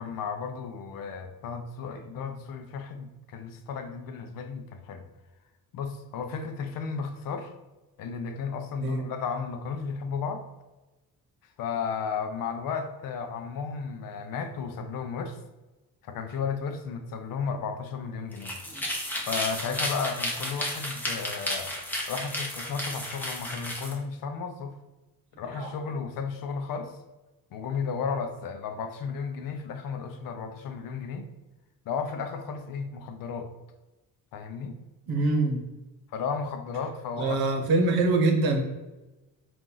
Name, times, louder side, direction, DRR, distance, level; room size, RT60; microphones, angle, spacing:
voice 1, 0.0-5.0 5.7-7.5 8.0-10.4 11.6-15.4 16.0-18.6 19.2-21.7 22.1-24.8 25.4-27.0 27.5-31.3 31.9-33.5 34.3-34.8 36.1-37.4, left 5 dB, 65° left, 7 dB, 0.6 m, -34 dB
sound 1, 18.3-23.9, equal, 5° left, 0.6 m, -33 dB
voice 2, 35.1-35.6 37.2-38.6, right 2 dB, 80° right, 3 dB, 1.0 m, -24 dB
4.4 x 2.5 x 3.8 m, 1.1 s
cardioid pair, 160°, 36 cm